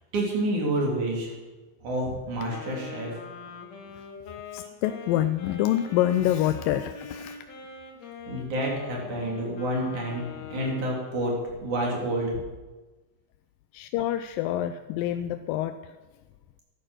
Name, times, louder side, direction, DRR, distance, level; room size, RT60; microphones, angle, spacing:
voice 1, 0.1-1.3 1.8-3.2 8.3-12.3, right 1 dB, 60° right, -2 dB, 4.7 m, -29 dB
Wind instrument woodwind instrument, 2.5-11.1, left 6 dB, 55° left, 2.9 m, -43 dB
voice 2, 4.5-7.4 13.7-15.9, left 12 dB, 85° left, 9 dB, 2.3 m, -26 dB
13.5 x 11.0 x 6.3 m, 1.2 s
omnidirectional pair, 4.0 m